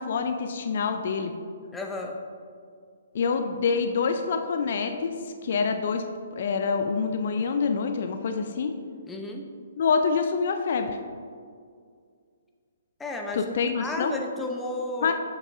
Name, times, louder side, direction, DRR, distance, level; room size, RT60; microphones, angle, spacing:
voice 1, 0.0-1.3 3.1-6.0 6.3-8.7 9.8-11.0 13.3-14.2 15.0-15.1, left 5 dB, 55° left, 6 dB, 0.5 m, -26 dB
voice 2, 1.7-2.2 9.1-9.5 13.0-15.1, left 2 dB, 10° left, 1 dB, 0.7 m, -33 dB
7.2 x 6.5 x 3.6 m, 2.2 s
figure-of-eight pair, 130°, 0 cm